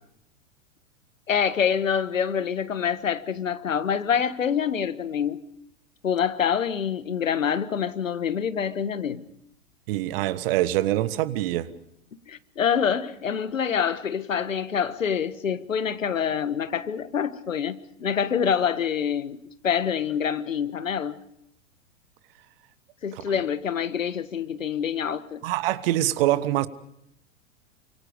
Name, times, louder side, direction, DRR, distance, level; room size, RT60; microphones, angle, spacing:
voice 1, 1.3-5.4 6.0-9.2 12.3-21.1 23.0-25.4, left 7 dB, 75° left, 1.5 m, -26 dB
voice 2, 9.9-11.7 23.1-23.2 25.4-26.7, right 15 dB, 45° right, 1.4 m, -24 dB
29.0 x 25.5 x 5.2 m
figure-of-eight pair, 100°, 40 cm